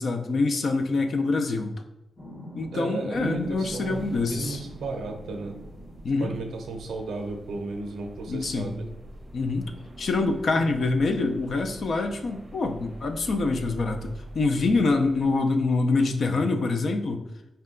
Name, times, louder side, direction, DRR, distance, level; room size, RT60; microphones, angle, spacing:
voice 1, 0.0-1.7 2.6-4.6 6.0-6.3 8.3-8.7 9.3-9.7 10.0-17.2, left 3 dB, 55° left, 6 dB, 0.4 m, -25 dB
sound 1, 2.2-6.6 7.9-8.1 8.4-10.5, equal, 20° left, 0.9 m, -45 dB
voice 2, 2.7-5.7 6.2-8.9 10.5-10.7, right 3 dB, 85° right, 4 dB, 0.6 m, -34 dB
sound 2, 3.1-15.4, right 1 dB, 15° right, 0.7 m, -45 dB
4.4 x 2.2 x 3.7 m, 0.92 s
wide cardioid pair, 145°, 0 cm